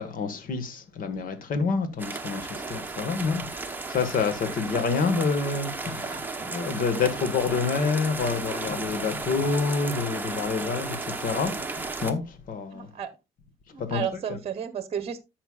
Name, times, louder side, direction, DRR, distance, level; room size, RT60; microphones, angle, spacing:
voice 1, 0.0-12.9 13.8-14.0, left 5 dB, 55° left, 1.8 m, -28 dB
sound 1, 2.0-12.1, right 3 dB, 10° right, 1.2 m, -34 dB
voice 2, 4.5-4.9 6.1-6.3 12.7-13.1 13.7-15.2, right 8 dB, 35° right, 1.1 m, -33 dB
13.5 x 5.8 x 2.5 m
cardioid pair, 110°, 17 cm